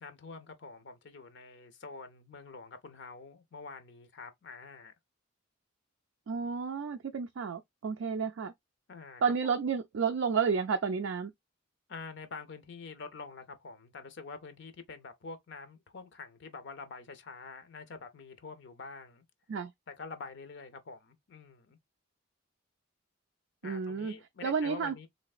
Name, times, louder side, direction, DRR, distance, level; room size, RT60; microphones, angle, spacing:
voice 1, 0.0-4.9 8.9-9.5 11.9-19.2 19.9-21.8 23.6-25.1, left 4 dB, 55° left, 0.6 m, -46 dB
voice 2, 6.3-8.5 9.2-11.3 19.5-19.7 23.6-24.1 24.4-25.1, right 5 dB, 65° right, 0.4 m, -31 dB
3.2 x 2.9 x 2.3 m
head